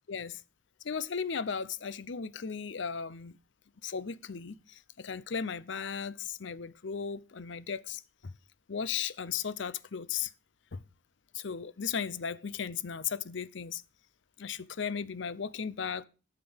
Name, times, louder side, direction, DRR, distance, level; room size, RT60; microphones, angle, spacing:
voice 1, 0.1-0.4 0.8-3.4 3.8-8.3 8.7-10.3 10.7-10.8 11.3-13.8 14.4-16.0, left 6 dB, 65° left, 0.6 m, -36 dB
12.0 x 5.9 x 7.1 m
head